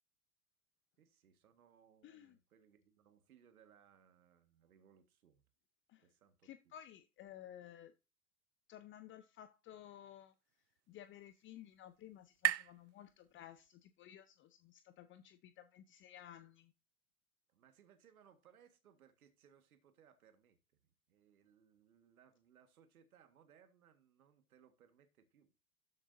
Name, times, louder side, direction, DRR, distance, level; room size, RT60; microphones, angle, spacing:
voice 1, 1.0-5.4 6.0-6.7 17.5-25.6, right 8 dB, 75° right, 1.8 m, -67 dB
voice 2, 2.0-2.4 5.9-6.1 6.4-7.9 8.7-10.3 10.9-16.7, left 11 dB, 25° left, 0.7 m, -55 dB
sound 1, 10.1-13.9, right 17 dB, 55° right, 0.5 m, -42 dB
12.5 x 7.2 x 2.7 m
hypercardioid pair, 95°, 44 cm